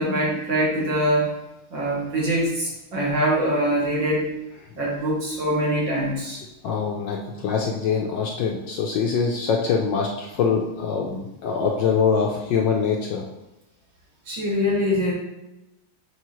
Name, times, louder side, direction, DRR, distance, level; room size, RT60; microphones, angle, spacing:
voice 1, 0.0-1.3 1.7-4.3 4.8-6.4 14.3-15.1, equal, 60° right, -4 dB, 2.3 m, -23 dB
voice 2, 6.6-13.2, left 6 dB, 70° left, 0 dB, 1.1 m, -24 dB
6.8 x 4.8 x 3.0 m, 0.93 s
omnidirectional pair, 2.4 m